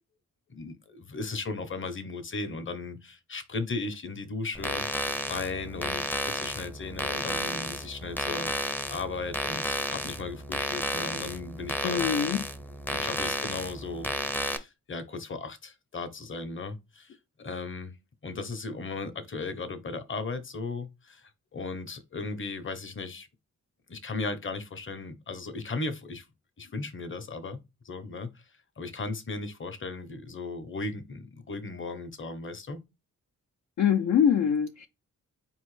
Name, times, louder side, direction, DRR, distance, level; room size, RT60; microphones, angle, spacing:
voice 1, 0.5-12.1 12.9-17.9 18.2-23.3 23.9-26.3 26.6-27.6 27.8-28.3 28.8-32.8, left 3 dB, 40° left, 0.8 m, -36 dB
sound 1, 4.5-14.6, equal, 5° left, 0.5 m, -32 dB
voice 2, 11.8-12.4 33.8-34.9, left 8 dB, 60° left, 0.4 m, -24 dB
4.3 x 3.1 x 3.1 m
cardioid pair, 85°, 32 cm